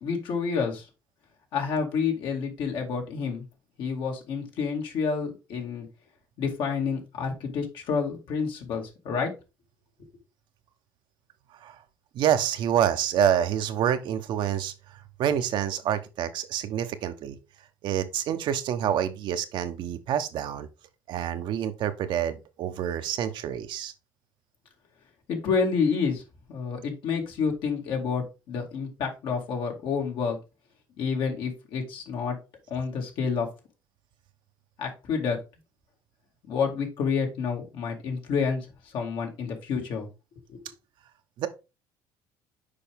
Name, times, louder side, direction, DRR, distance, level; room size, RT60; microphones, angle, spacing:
voice 1, 0.0-0.9 1.5-3.4 3.8-5.9 6.4-9.3 25.3-26.2 26.5-30.4 31.0-32.4 32.7-33.5 34.8-35.4 36.5-40.1 40.5-40.6, left 5 dB, 65° left, 2.2 m, -29 dB
voice 2, 12.1-14.7 15.2-17.4 17.8-20.7 21.1-23.9 41.4-41.5, right 9 dB, 65° right, 0.9 m, -27 dB
6.7 x 4.9 x 3.5 m
supercardioid pair, 90°, 9 cm